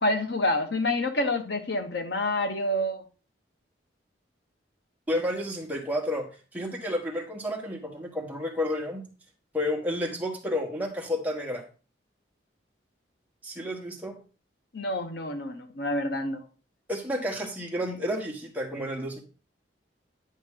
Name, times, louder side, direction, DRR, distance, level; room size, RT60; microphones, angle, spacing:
voice 1, 0.0-3.0 14.7-16.4, left 1 dB, 65° left, 6 dB, 1.0 m, -28 dB
voice 2, 5.1-6.3 6.5-9.1 9.5-11.6 13.4-14.2 16.9-19.2, left 1 dB, 10° right, 0 dB, 1.2 m, -31 dB
9.4 x 5.4 x 3.6 m, 0.35 s
head